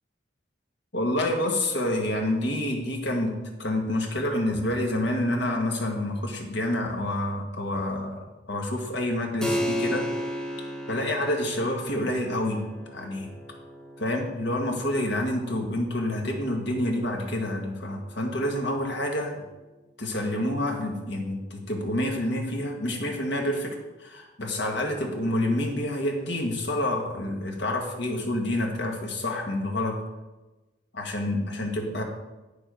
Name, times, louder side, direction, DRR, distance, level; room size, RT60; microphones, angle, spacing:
voice 1, 0.9-3.3 3.6-10.1 10.9-12.7 12.9-13.3 14.0-19.4 20.0-30.0 30.9-32.0, left 1 dB, 60° left, 1 dB, 1.6 m, -28 dB
Keyboard (musical), 9.4-19.6, equal, 5° left, 1.0 m, -36 dB
8.7 x 7.1 x 5.1 m, 1.1 s
head